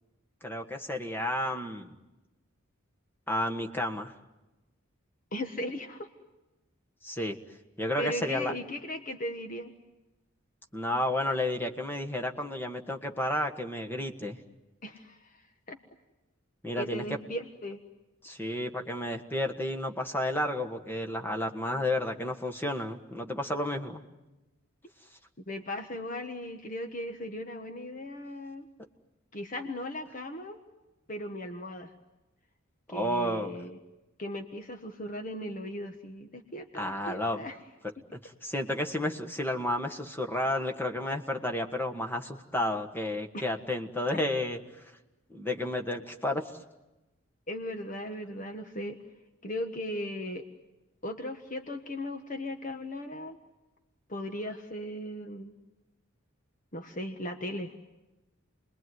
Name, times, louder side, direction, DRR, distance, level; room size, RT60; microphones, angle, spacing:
voice 1, 0.4-1.9 3.3-4.1 7.0-7.4 7.8-8.5 10.7-14.4 16.6-17.0 18.2-24.0 32.9-33.5 36.7-37.4 38.4-44.6 45.3-46.4, left 1 dB, 10° left, 4 dB, 1.6 m, -31 dB
voice 2, 5.3-6.1 8.0-9.7 14.8-15.8 16.8-17.8 25.5-28.7 29.3-30.6 31.1-31.9 32.9-33.8 34.2-37.6 43.3-43.4 47.5-49.0 49.4-50.5 51.0-53.4 54.1-55.5 56.7-57.7, left 1 dB, 40° left, 6 dB, 1.4 m, -37 dB
29.5 x 21.0 x 9.4 m, 1.0 s
head